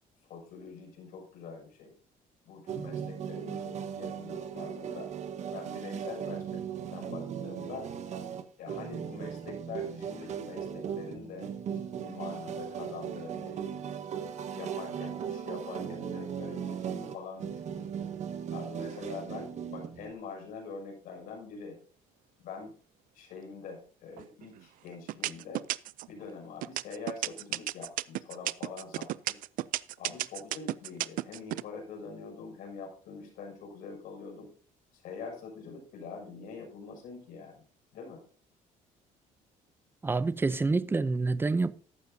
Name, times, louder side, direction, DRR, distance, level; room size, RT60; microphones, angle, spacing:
voice 1, 0.3-1.9 2.4-5.1 5.5-6.6 6.9-7.9 8.6-14.0 14.5-17.9 18.5-21.8 22.4-22.8 23.1-25.6 26.1-29.4 30.0-34.5 34.9-37.6 37.9-38.2, left 5 dB, 75° left, 6.6 m, -44 dB
Some Keys, 2.7-20.1, right 8 dB, 50° right, 1.4 m, -38 dB
sound 1, 24.2-24.6 25.1-26.1 26.6-31.6, right 16 dB, 70° right, 0.5 m, -33 dB
voice 2, 40.0-41.7, right 3 dB, 15° right, 0.7 m, -27 dB
15.0 x 12.0 x 2.8 m
cardioid pair, 130°, 15 cm